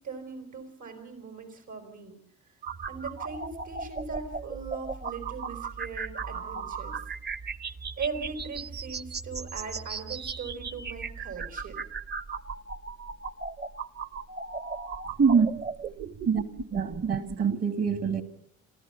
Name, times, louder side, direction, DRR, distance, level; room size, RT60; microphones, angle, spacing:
voice 1, 0.0-2.2 2.5-2.6 2.9-7.0 8.0-11.8, right 5 dB, 80° right, 4.9 m, -39 dB
sound 1, 2.6-17.6, right 5 dB, 35° right, 0.7 m, -37 dB
voice 2, 15.2-15.6 16.3-16.4 16.7-18.2, right 6 dB, 55° right, 2.0 m, -24 dB
27.0 x 14.0 x 7.0 m
cardioid pair, 90°, 30 cm